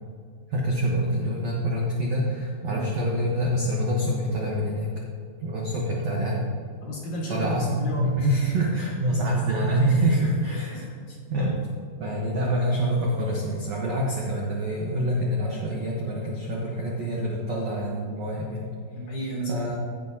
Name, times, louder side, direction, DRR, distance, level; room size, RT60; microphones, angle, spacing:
voice 1, 0.5-4.9 5.4-6.5 7.3-10.9 11.3-11.5 12.0-18.7 19.5-19.7, right 1 dB, 85° right, -3 dB, 1.4 m, -26 dB
voice 2, 6.8-8.1 10.7-11.2 18.9-19.7, right 1 dB, 55° left, -4 dB, 2.5 m, -33 dB
16.5 x 7.2 x 2.8 m, 2.2 s
omnidirectional pair, 5.0 m